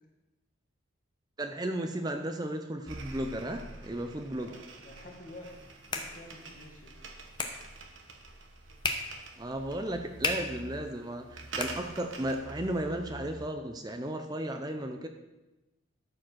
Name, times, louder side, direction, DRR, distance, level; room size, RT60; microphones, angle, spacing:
voice 1, 1.4-4.6 9.4-15.1, right 1 dB, 20° right, 5 dB, 0.6 m, -34 dB
sound 1, 2.8-13.5, right 3 dB, 75° right, 1.2 m, -46 dB
voice 2, 4.4-5.5 5.9-6.9, left 1 dB, 45° left, 0 dB, 1.9 m, -49 dB
sound 2, 5.4-12.4, left 3 dB, 25° left, 0.9 m, -39 dB
13.0 x 5.0 x 6.2 m, 1.1 s
head